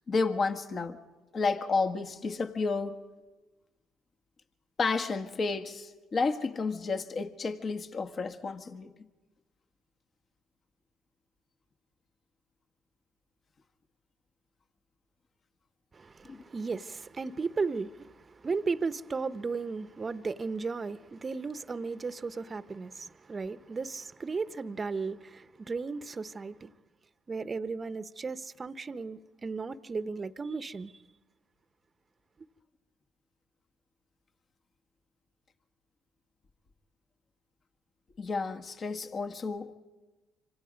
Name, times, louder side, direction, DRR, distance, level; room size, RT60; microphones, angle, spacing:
voice 1, 0.1-1.0 1.3-2.9 4.8-8.9 16.2-16.4 38.2-39.7, left 4 dB, 45° left, 1.7 m, -31 dB
voice 2, 15.9-26.7 27.3-31.0, right 4 dB, 35° right, 0.9 m, -35 dB
26.5 x 26.0 x 5.2 m
hypercardioid pair, 60°, 0 cm